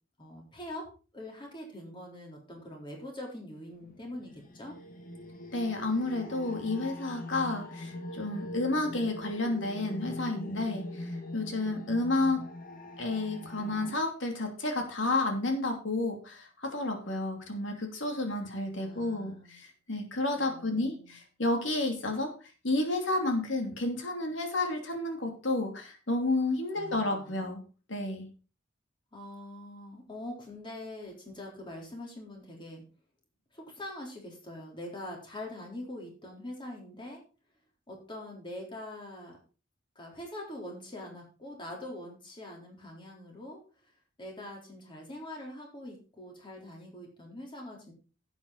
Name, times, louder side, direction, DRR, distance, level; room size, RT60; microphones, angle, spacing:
voice 1, 0.2-0.9 1.1-4.8 18.8-19.6 20.3-21.2 26.7-27.4 29.1-32.8 33.5-37.2 37.9-39.4 40.0-43.6 44.2-47.9, left 1 dB, 25° left, -1 dB, 3.9 m, -43 dB
sound 1, 3.8-14.0, left 1 dB, 45° left, 1.6 m, -42 dB
voice 2, 5.5-12.4 13.0-22.3 22.6-27.6 27.9-28.3, left 2 dB, 70° left, 3 dB, 2.9 m, -31 dB
11.5 x 8.5 x 4.1 m, 0.35 s
head